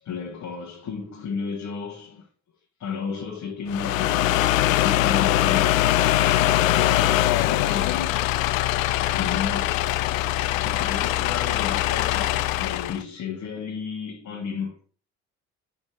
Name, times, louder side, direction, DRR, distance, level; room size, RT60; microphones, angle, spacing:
voice 1, 0.0-2.3 2.8-5.9 6.8-8.9 9.2-10.0 10.6-14.8, left 6 dB, 45° left, 1.9 m, -33 dB
sound 1, 3.7-13.0, left 14 dB, 70° left, 0.5 m, -22 dB
11.5 x 4.3 x 4.4 m
figure-of-eight pair, 50°, 41 cm